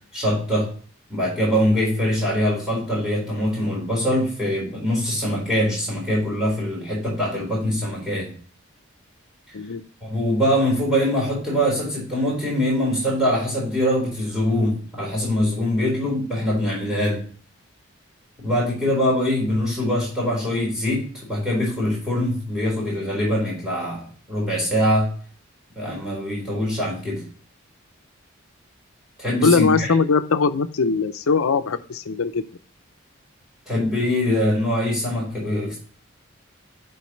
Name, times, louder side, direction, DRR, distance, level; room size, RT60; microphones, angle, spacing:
voice 1, 0.1-0.7 1.1-8.3 10.0-17.2 18.4-25.1 25.7-27.2 29.2-29.9 33.7-35.8, equal, 5° right, -6 dB, 4.3 m, -23 dB
voice 2, 29.4-32.4, left 4 dB, 85° left, 11 dB, 0.6 m, -20 dB
11.5 x 4.7 x 3.1 m, 0.42 s
head